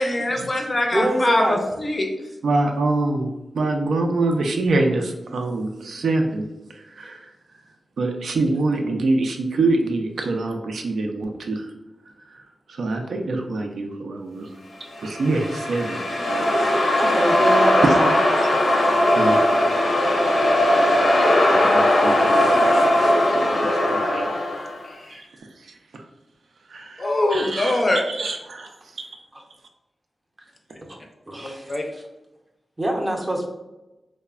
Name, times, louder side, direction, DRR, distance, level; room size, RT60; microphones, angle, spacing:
voice 1, 0.0-2.1 24.8-25.2 27.0-28.0 31.4-31.8, left 1 dB, 35° left, 2 dB, 0.4 m, -23 dB
voice 2, 0.9-1.7 17.0-18.1 30.9-31.0 31.3-31.7 32.8-33.5, right 1 dB, 25° right, 0 dB, 0.5 m, -25 dB
voice 3, 2.4-3.3 3.5-6.4 6.7-7.3 8.0-11.7 12.3-14.5 15.0-16.8 17.8-18.0 18.3-18.5 19.1-19.4 21.5-24.3 25.1-25.2 25.6-26.0 26.7-29.1, right 2 dB, 90° right, 3 dB, 0.3 m, -25 dB
sound 1, 15.0-24.8, left 1 dB, 85° left, 0.6 m, -19 dB
3.1 x 2.0 x 2.3 m, 0.99 s
wide cardioid pair, 115°, 0 cm